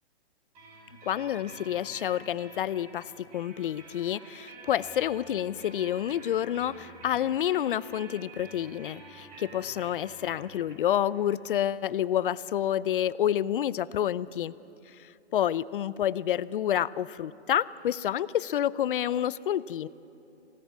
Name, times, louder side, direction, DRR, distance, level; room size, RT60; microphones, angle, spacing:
sound 1, 0.5-14.1, right 3 dB, 30° right, 5.5 m, -50 dB
voice 1, 1.1-14.5 15.0-19.9, left 11 dB, 50° left, 19 dB, 0.6 m, -29 dB
25.0 x 18.5 x 9.5 m, 2.9 s
hypercardioid pair, 155°, 35 cm